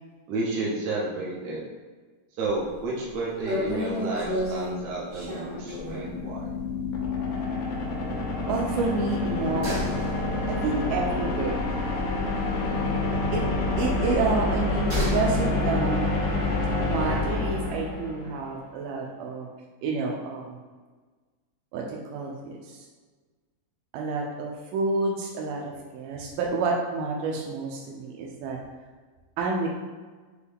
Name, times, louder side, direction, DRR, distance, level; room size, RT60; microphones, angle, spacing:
voice 1, 0.3-1.6 2.4-6.5, right 2 dB, 70° right, -4 dB, 2.2 m, -31 dB
sound 1, 2.5-2.8 3.1-3.2 3.5-6.2 6.5-6.7 7.0-7.1 8.7-12.7 12.9-15.4 15.6-15.7, left 1 dB, 40° right, 0.9 m, -33 dB
sound 2, 5.4-18.5, left 3 dB, 85° left, 1.3 m, -28 dB
voice 2, 8.5-9.8 10.5-11.8 13.3-13.4 13.8-16.2 16.8-19.5 19.8-20.6 21.7-22.9 23.9-28.6 29.4-29.7, right 4 dB, 85° right, -1 dB, 2.2 m, -29 dB
6.3 x 2.3 x 3.5 m, 1.4 s
omnidirectional pair, 3.7 m